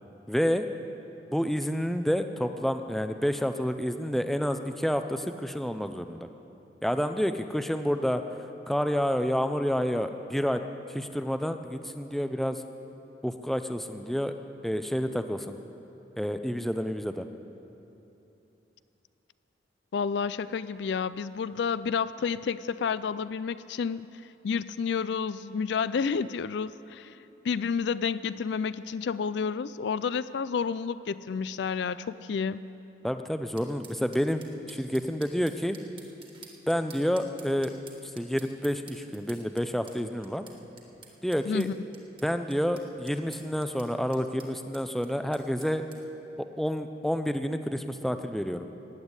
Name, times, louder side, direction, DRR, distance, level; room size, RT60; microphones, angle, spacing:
voice 1, 0.3-0.6 1.3-6.3 6.8-8.2 8.7-10.6 10.9-12.6 13.2-14.3 14.6-15.6 16.2-17.3 33.0-34.4 34.7-35.8 36.7-37.7 38.0-40.4 41.2-41.7 42.2-45.9 46.4-48.7, equal, ahead, 8 dB, 0.5 m, -29 dB
voice 2, 19.9-24.1 24.4-27.2 27.4-32.6 41.5-41.7, left 6 dB, 70° left, 16 dB, 0.4 m, -30 dB
sound 1, 33.6-46.0, right 5 dB, 25° right, 1.4 m, -52 dB
16.0 x 8.3 x 9.7 m, 3.0 s
head